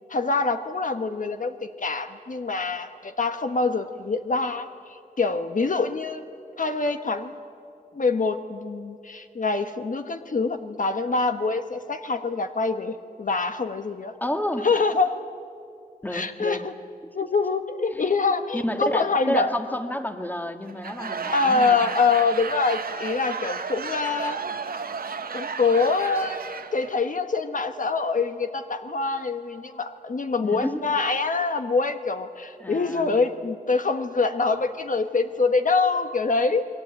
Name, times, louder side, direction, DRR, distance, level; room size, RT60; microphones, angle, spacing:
voice 1, 0.0-6.3 6.6-7.4 7.9-14.1 14.6-15.1 16.1-16.7 17.1-19.5 21.3-24.8 25.3-26.4 26.7-36.7, left 4 dB, 60° left, 8 dB, 1.2 m, -25 dB
voice 2, 14.2-14.7 16.0-16.6 17.9-18.0 18.5-21.8 30.4-30.8 32.6-33.1, left 1 dB, 10° left, 7 dB, 1.7 m, -30 dB
Laughter / Crowd, 20.7-26.9, right 5 dB, 80° right, 1.3 m, -33 dB
29.5 x 22.0 x 8.9 m, 2.5 s
wide cardioid pair, 105°, 15 cm